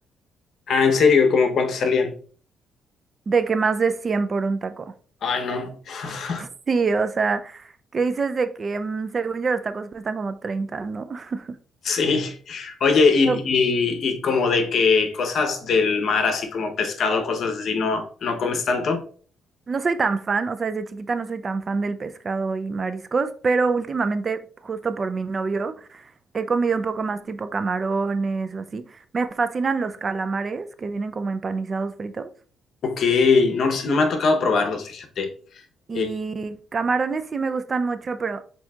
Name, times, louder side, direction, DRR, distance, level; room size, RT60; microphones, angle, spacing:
voice 1, 0.7-2.1 5.2-6.5 11.8-19.0 32.8-35.3 35.9-36.1, left 4 dB, 60° left, 0.8 m, -21 dB
voice 2, 3.3-4.9 6.4-11.6 13.2-13.4 19.7-32.3 35.9-38.4, right 4 dB, 40° right, 0.3 m, -26 dB
7.0 x 2.7 x 2.3 m
cardioid pair, 90°, 0 cm